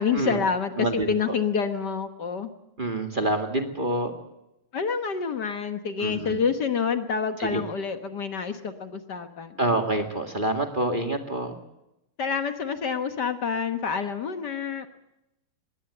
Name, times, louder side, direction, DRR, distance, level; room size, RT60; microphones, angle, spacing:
voice 1, 0.0-2.5 4.7-9.6 12.2-14.9, left 6 dB, 55° left, 8 dB, 1.7 m, -28 dB
voice 2, 0.8-1.1 2.8-4.1 6.0-6.4 7.4-7.6 9.6-11.5, right 1 dB, 25° right, 5 dB, 2.0 m, -27 dB
21.0 x 17.0 x 7.9 m, 0.90 s
omnidirectional pair, 2.4 m